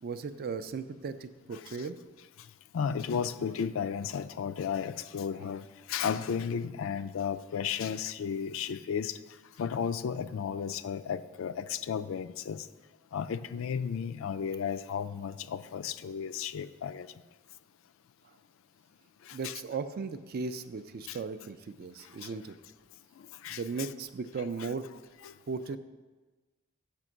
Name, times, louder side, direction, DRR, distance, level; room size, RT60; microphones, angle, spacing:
voice 1, 0.0-2.0 19.3-22.5 23.5-24.9 25.5-25.8, right 4 dB, 45° right, 11 dB, 0.3 m, -37 dB
voice 2, 1.5-1.9 2.7-9.2 9.6-12.7 13.1-17.1 19.3-19.6 21.1-21.2 22.2-22.3 23.2-23.9 24.6-24.7 25.2-25.3, left 7 dB, 65° left, 13 dB, 0.3 m, -34 dB
6.7 x 5.1 x 6.2 m, 1.3 s
head